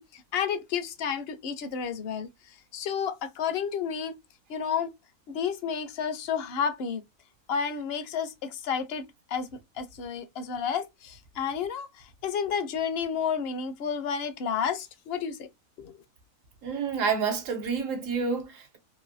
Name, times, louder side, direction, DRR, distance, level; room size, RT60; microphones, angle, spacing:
voice 1, 0.0-2.3 2.7-4.1 4.5-4.9 5.3-7.0 7.5-9.5 9.8-15.5 15.8-16.0, left 7 dB, 60° left, 0.7 m, -31 dB
voice 2, 16.6-18.8, right 5 dB, 75° right, 1.2 m, -29 dB
3.1 x 2.5 x 2.6 m
omnidirectional pair, 1.4 m